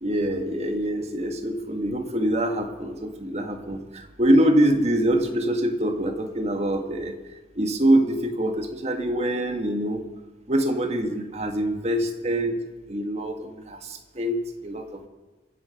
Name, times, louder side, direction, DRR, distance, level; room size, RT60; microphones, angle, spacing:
voice 1, 0.0-7.2 7.5-10.0 10.5-12.6 12.9-15.1, right 1 dB, 35° right, 5 dB, 1.5 m, -24 dB
25.0 x 8.4 x 5.7 m, 1.2 s
head